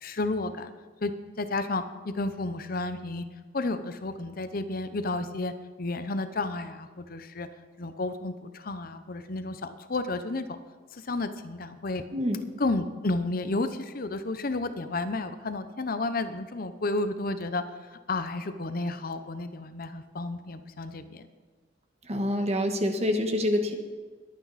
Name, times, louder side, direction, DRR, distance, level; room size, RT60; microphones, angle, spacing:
voice 1, 0.0-0.7 1.0-3.2 3.5-5.5 5.8-7.5 7.8-10.5 10.9-12.0 12.6-17.6 18.1-21.3, left 2 dB, 55° left, 10 dB, 0.8 m, -31 dB
voice 2, 22.0-23.7, left 1 dB, 35° right, 5 dB, 1.4 m, -26 dB
21.0 x 9.0 x 4.2 m, 1.4 s
head